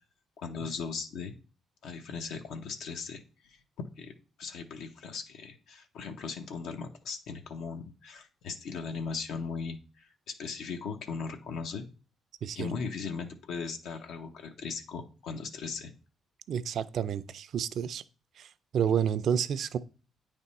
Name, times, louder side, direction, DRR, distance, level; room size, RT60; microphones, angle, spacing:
voice 1, 0.4-1.3 1.8-3.6 4.0-4.1 4.4-11.9 12.5-15.9, left 5 dB, 85° left, 0.7 m, -38 dB
voice 2, 16.5-18.0 18.4-18.5 18.7-19.8, right 8 dB, 65° right, 0.4 m, -29 dB
8.9 x 3.4 x 4.1 m
cardioid pair, 90°, 0 cm